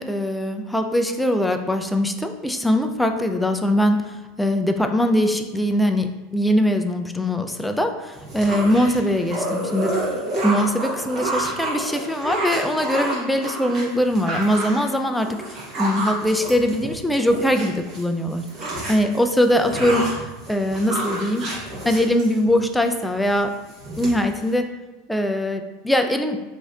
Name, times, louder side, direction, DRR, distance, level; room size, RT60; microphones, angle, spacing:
voice 1, 0.0-9.9 10.4-18.4 18.9-20.1 20.5-21.5 21.8-23.5 24.0-24.7 25.1-26.4, equal, 5° left, 5 dB, 0.3 m, -21 dB
sound 1, 8.1-18.0 18.3-22.7 23.1-23.4 23.7-24.5, right 1 dB, 35° right, 1.3 m, -29 dB
3.1 x 2.6 x 3.7 m, 1.2 s
supercardioid pair, 125°, 0 cm